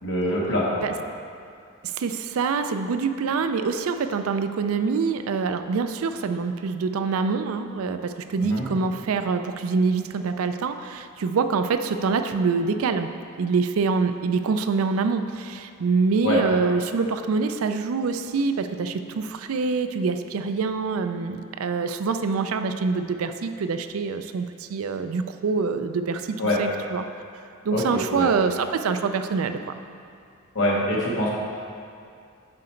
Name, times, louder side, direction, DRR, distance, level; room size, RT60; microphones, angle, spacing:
voice 1, 0.0-0.8 8.4-8.7 16.2-16.4 26.4-26.6 27.7-28.3 30.5-31.3, left 1 dB, 60° left, -4 dB, 1.4 m, -24 dB
voice 2, 1.8-13.1 13.4-27.1 27.6-29.8, right 4 dB, 80° right, 9 dB, 0.4 m, -25 dB
7.6 x 5.0 x 4.4 m, 2.4 s
head